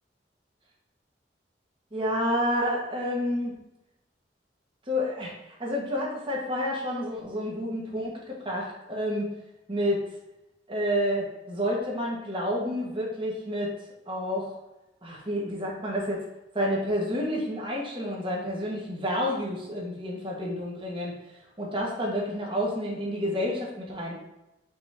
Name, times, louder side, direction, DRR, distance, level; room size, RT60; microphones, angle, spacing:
voice 1, 1.9-3.5 4.9-5.3 5.6-9.3 9.7-10.1 10.7-13.7 14.1-14.5 15.0-16.2 16.5-21.2 21.6-24.1, equal, 30° right, -3 dB, 1.7 m, -29 dB
5.6 x 4.3 x 4.4 m, 0.94 s
head